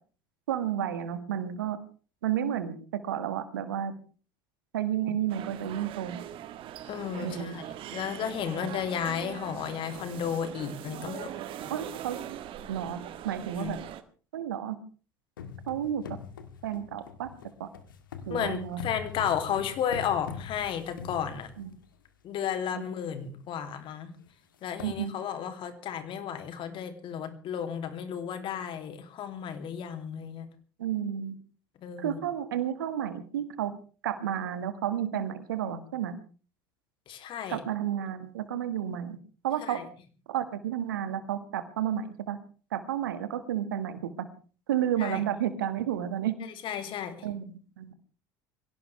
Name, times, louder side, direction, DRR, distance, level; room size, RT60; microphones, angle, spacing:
voice 1, 0.5-1.8 2.2-3.9 4.7-6.2 7.2-7.6 11.7-12.2 12.7-13.0 13.2-13.8 14.3-14.8 15.7-16.2 16.6-17.3 17.6-17.7 18.3-18.8 21.6-21.7 22.7-23.1 24.8-25.1 30.8-31.4 32.0-33.7 34.0-36.2 37.5-39.2 39.4-39.8 40.3-42.4 42.7-44.3 44.7-46.4 47.2-47.4 47.8-47.9, right 10 dB, 80° right, 11 dB, 1.8 m, -31 dB
sound 1, 5.3-14.0, right 11 dB, 55° right, 1.6 m, -41 dB
voice 2, 6.9-11.3 11.6-11.7 13.5-13.7 18.3-21.5 22.2-24.1 24.6-30.5 31.8-32.2 37.1-37.6 39.6-39.9 45.0-45.2 46.6-47.3, left 8 dB, 50° left, 8 dB, 2.9 m, -33 dB
sound 2, 15.4-21.9 22.5-22.6 22.9-23.2 23.5-23.6 24.3-24.4 24.6-25.0, left 7 dB, 85° left, 1.8 m, -43 dB
24.0 x 16.5 x 3.4 m, 0.38 s
hypercardioid pair, 70°, 11 cm